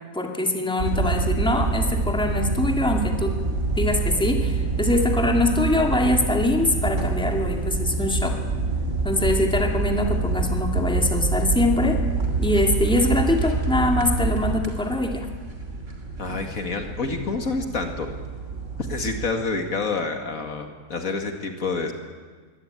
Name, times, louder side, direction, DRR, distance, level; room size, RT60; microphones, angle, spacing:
voice 1, 0.1-3.3 3.8-8.4 9.0-12.0 12.4-15.3, left 2 dB, 5° left, 2 dB, 2.3 m, -23 dB
sound 1, 0.8-19.3, right 3 dB, 55° right, 3.2 m, -26 dB
voice 2, 16.2-18.1 18.8-21.9, left 4 dB, 70° left, 5 dB, 2.5 m, -28 dB
22.5 x 18.0 x 9.0 m, 1.5 s
omnidirectional pair, 1.5 m